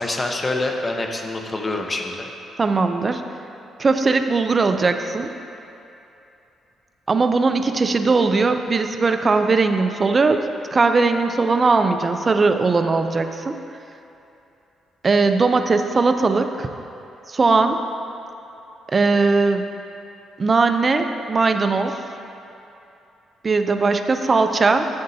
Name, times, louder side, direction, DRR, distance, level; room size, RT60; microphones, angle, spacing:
voice 1, 0.0-2.3, left 2 dB, 25° left, 3 dB, 0.9 m, -26 dB
voice 2, 2.6-3.2 3.8-5.3 7.1-13.5 15.0-16.7 17.3-17.8 18.9-19.7 20.4-22.0 23.4-24.9, right 4 dB, 35° right, 7 dB, 0.5 m, -19 dB
11.0 x 7.8 x 2.8 m, 2.8 s
cardioid pair, 90°, 0 cm